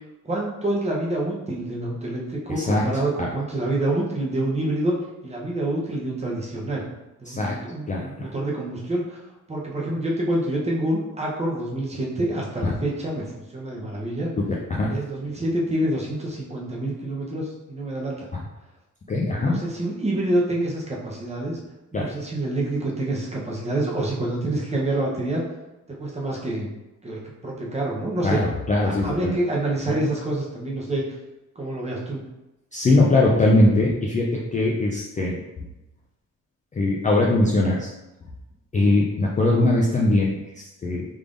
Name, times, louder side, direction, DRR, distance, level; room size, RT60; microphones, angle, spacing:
voice 1, 0.2-5.0 5.2-6.8 7.2-9.2 9.5-14.3 14.9-18.3 19.4-21.6 21.9-25.4 25.9-26.7 27.0-28.4 28.8-31.0 31.6-32.2, right 1 dB, 20° right, -3 dB, 0.7 m, -27 dB
voice 2, 7.9-8.3 12.6-12.7 14.7-14.9 19.1-19.6 21.9-22.1 28.2-29.3 32.7-35.4 36.7-37.9 38.7-41.0, left 2 dB, 25° left, -3 dB, 0.3 m, -21 dB
3.5 x 3.3 x 2.5 m, 0.99 s
wide cardioid pair, 140°, 33 cm